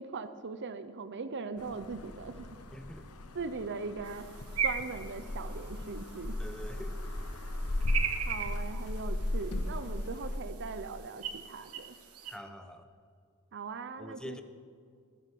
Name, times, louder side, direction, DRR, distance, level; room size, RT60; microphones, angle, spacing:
voice 1, 0.0-2.5 3.3-4.3 4.6-6.4 8.3-12.0 13.5-14.4, right 4 dB, 55° right, 12 dB, 0.7 m, -40 dB
sound 1, 1.6-10.4, left 1 dB, 75° left, 1.2 m, -36 dB
voice 2, 2.7-3.1 6.4-7.0 12.3-12.9 14.0-14.4, equal, 5° left, 8 dB, 0.9 m, -45 dB
sound 2, 4.0-12.4, right 7 dB, 75° right, 1.4 m, -40 dB
19.5 x 10.5 x 6.1 m, 2.2 s
head